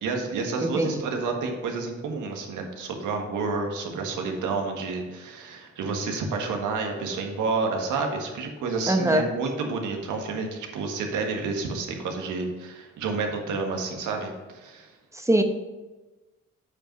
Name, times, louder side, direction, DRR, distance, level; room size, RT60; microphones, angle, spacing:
voice 1, 0.0-14.9, right 4 dB, 80° right, 3 dB, 1.6 m, -30 dB
voice 2, 8.9-9.3 15.1-15.4, right 1 dB, 10° right, 6 dB, 0.9 m, -22 dB
8.6 x 5.1 x 5.2 m, 1.2 s
cardioid pair, 90°, 30 cm